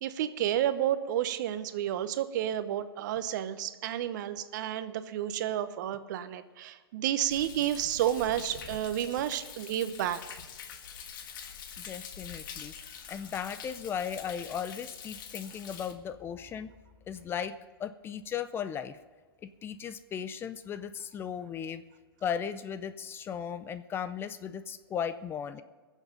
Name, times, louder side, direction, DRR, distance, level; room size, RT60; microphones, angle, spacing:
voice 1, 0.0-10.4, right 11 dB, 50° right, 12 dB, 0.9 m, -31 dB
Thunder, 7.3-15.9, left 7 dB, 55° left, 1.6 m, -45 dB
voice 2, 11.8-12.7 13.1-16.7 17.1-19.0 19.6-21.8 22.2-25.6, left 8 dB, 20° left, 12 dB, 0.5 m, -36 dB
21.0 x 7.4 x 5.3 m, 1.4 s
hypercardioid pair, 125°, 13 cm